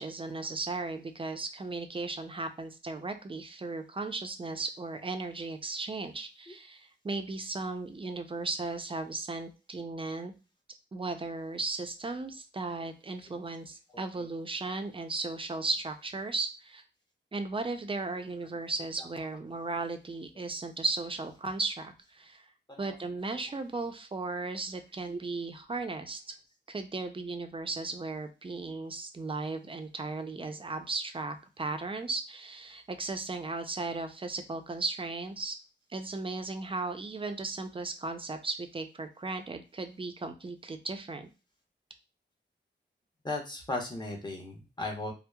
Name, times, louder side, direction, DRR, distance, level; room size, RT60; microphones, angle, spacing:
voice 1, 0.0-10.3 10.9-16.8 17.3-22.4 22.8-26.3 26.7-35.6 35.9-41.3, right 3 dB, 25° right, 7 dB, 0.4 m, -36 dB
voice 2, 13.9-14.2 22.7-23.0 23.3-23.4 43.2-45.1, left 2 dB, 20° left, 1 dB, 0.8 m, -37 dB
2.8 x 2.0 x 2.2 m, 0.31 s
cardioid pair, 65°, 20 cm